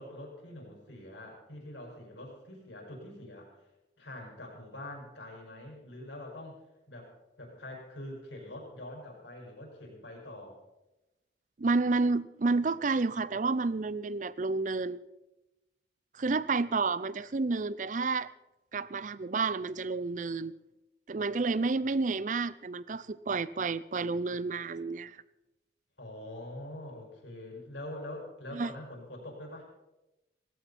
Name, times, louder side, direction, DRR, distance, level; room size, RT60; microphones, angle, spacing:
voice 1, 0.0-3.7 4.0-6.6 6.9-10.6 26.0-29.7, left 1 dB, 85° left, 5.6 m, -44 dB
voice 2, 11.6-15.0 16.2-18.3 18.7-20.5 21.1-25.2 28.5-28.7, right 3 dB, 45° right, 0.5 m, -30 dB
18.0 x 16.0 x 4.3 m
head